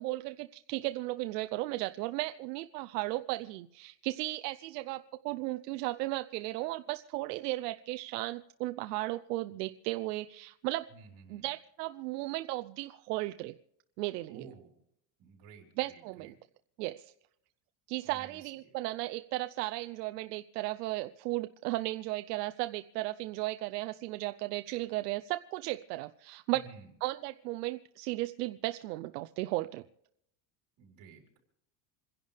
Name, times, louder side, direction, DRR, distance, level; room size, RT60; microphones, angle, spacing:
voice 1, 0.0-10.9 11.3-13.5 14.0-14.5 15.8-16.3 16.8-17.1 17.9-26.7 27.0-29.8, right 18 dB, 75° right, 9 dB, 0.7 m, -35 dB
voice 2, 10.9-11.5 14.3-14.7 15.2-16.3 18.0-18.7 26.5-26.9 30.8-31.4, right 5 dB, 35° right, 0 dB, 4.3 m, -53 dB
27.5 x 11.0 x 3.4 m, 0.73 s
cardioid pair, 180°, 49 cm